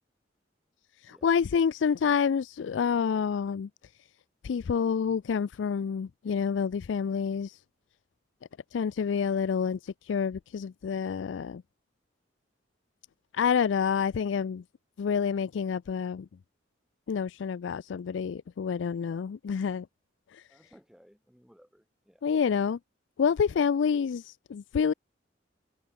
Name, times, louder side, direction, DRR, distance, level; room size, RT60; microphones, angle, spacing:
voice 1, 1.0-3.7 4.4-7.6 8.7-11.6 13.3-14.6 15.0-16.3 17.1-19.9 20.3-20.4 22.2-22.8 23.2-24.9, left 6 dB, 75° left, 0.4 m, -28 dB
voice 2, 20.5-22.3, equal, ahead, 2.5 m, -60 dB
head